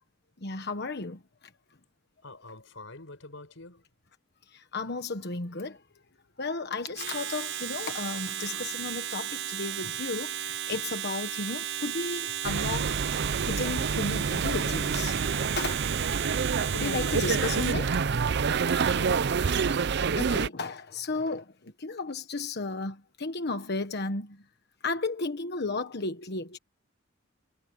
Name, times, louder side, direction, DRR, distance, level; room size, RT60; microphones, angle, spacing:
voice 1, 0.4-1.2 4.5-5.8 6.4-13.0 13.4-15.9 16.7-18.0 18.3-18.4 19.4-19.6 20.1-24.4 24.8-26.6, left 3 dB, 55° left, 1.3 m, -34 dB
voice 2, 2.2-3.9 7.6-7.7 16.7-17.3 18.5-19.3, left 2 dB, 80° left, 5.9 m, -46 dB
Domestic sounds home sounds, 6.9-17.9, right 10 dB, 75° right, 5.6 m, -34 dB
sound 1, 12.4-20.5, right 5 dB, 60° right, 0.5 m, -27 dB
head